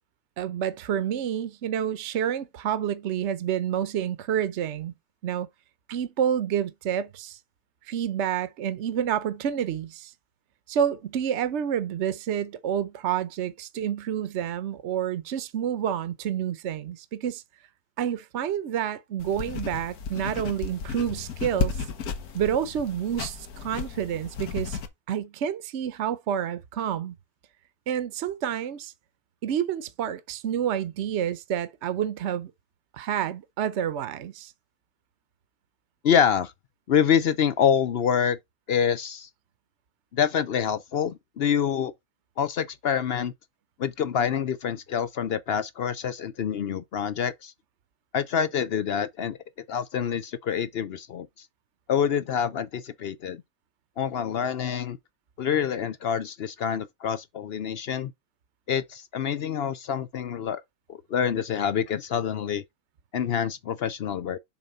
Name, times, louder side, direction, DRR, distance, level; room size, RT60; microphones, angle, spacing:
voice 1, 0.4-4.9 5.2-5.5 5.9-7.4 7.8-10.1 10.7-17.4 18.0-21.8 22.3-24.8 25.1-27.1 27.9-28.9 29.4-32.5 32.9-34.5, right 9 dB, 55° right, 1.0 m, -29 dB
sound 1, 19.2-24.9, left 5 dB, 85° left, 1.6 m, -33 dB
voice 2, 36.0-36.5 36.9-38.4 38.7-39.3 40.1-41.9 42.4-43.3 43.8-47.5 48.1-49.4 49.7-51.3 51.9-53.4 54.0-55.0 55.4-58.1 58.7-60.6 60.9-62.6 63.1-64.4, left 8 dB, 60° left, 0.7 m, -26 dB
7.1 x 3.8 x 5.4 m
omnidirectional pair, 1.5 m